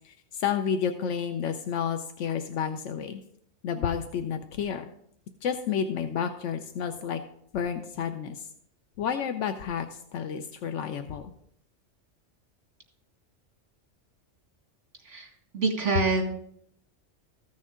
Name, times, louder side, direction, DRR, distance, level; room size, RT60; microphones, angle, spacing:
voice 1, 0.0-3.2 3.6-4.9 5.4-7.2 7.5-8.5 9.0-9.9 10.1-11.3, left 7 dB, 85° left, 7 dB, 1.0 m, -30 dB
voice 2, 15.5-16.2, right 4 dB, 80° right, 1 dB, 2.4 m, -25 dB
14.5 x 6.4 x 3.6 m, 0.68 s
omnidirectional pair, 1.2 m